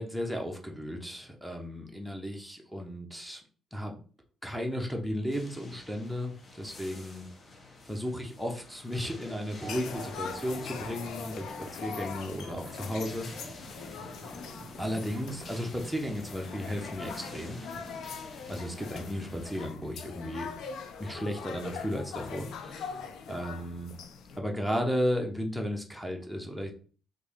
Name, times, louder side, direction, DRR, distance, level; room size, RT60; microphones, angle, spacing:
voice 1, 0.0-3.4 3.7-4.0 4.4-7.3 7.8-13.3 14.8-17.6 18.5-20.5 21.0-22.9 23.3-23.9 24.4-26.7, equal, ahead, 2 dB, 0.7 m, -34 dB
sound 1, 5.3-19.6, left 2 dB, 45° left, 0.8 m, -50 dB
sound 2, 9.0-18.0, right 4 dB, 35° right, 0.4 m, -49 dB
sound 3, 9.7-24.4, left 6 dB, 75° left, 0.4 m, -42 dB
3.2 x 2.6 x 3.5 m, 0.40 s
cardioid pair, 90°, 0 cm